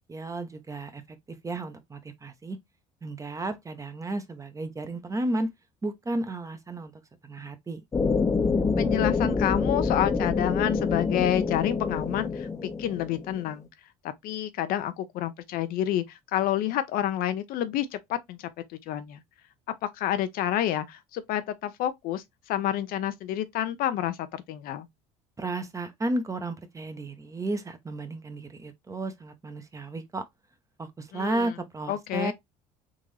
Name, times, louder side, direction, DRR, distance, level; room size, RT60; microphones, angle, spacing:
voice 1, 0.1-2.6 3.0-5.5 5.8-7.8 25.4-30.2 30.8-32.3, right 2 dB, 20° right, 0.8 m, -33 dB
sound 1, 7.9-13.4, left 4 dB, 20° left, 0.5 m, -26 dB
voice 2, 8.8-12.5 12.8-13.7 14.2-18.5 18.9-19.2 19.9-24.9 31.1-31.5 31.9-32.3, left 12 dB, 65° left, 0.6 m, -29 dB
3.7 x 2.6 x 3.1 m
supercardioid pair, 90°, 16 cm